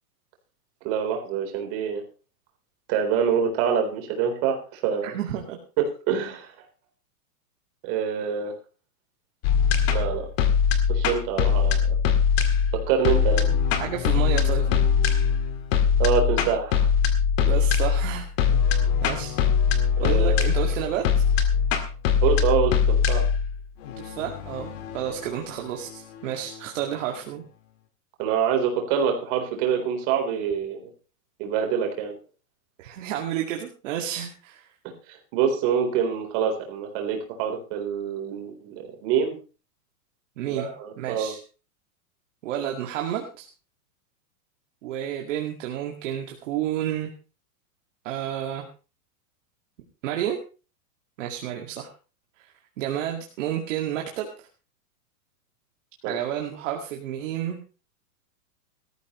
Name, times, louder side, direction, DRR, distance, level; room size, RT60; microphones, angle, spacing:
voice 1, 0.8-2.0 2.9-5.2 6.1-6.5 7.8-8.5 9.9-10.3 10.9-12.0 12.9-13.5 16.0-16.9 17.5-17.6 20.0-20.4 22.2-23.2 28.2-30.8 31.4-32.2 35.1-39.3 40.5-41.3 56.0-56.1, right 7 dB, 35° right, 3 dB, 4.0 m, -26 dB
voice 2, 5.0-5.6 13.8-14.7 17.4-18.6 19.0-19.3 20.0-21.0 24.0-27.4 32.8-34.7 40.4-40.7 41.0-41.4 42.4-43.5 44.8-47.1 48.0-48.7 50.0-50.4 51.2-51.9 52.4-54.5 56.0-57.6, right 11 dB, 50° right, 1 dB, 2.2 m, -31 dB
sound 1, 9.4-26.6, left 7 dB, 40° left, 2.1 m, -22 dB
19.0 x 13.5 x 3.1 m, 0.34 s
supercardioid pair, 165°, 46 cm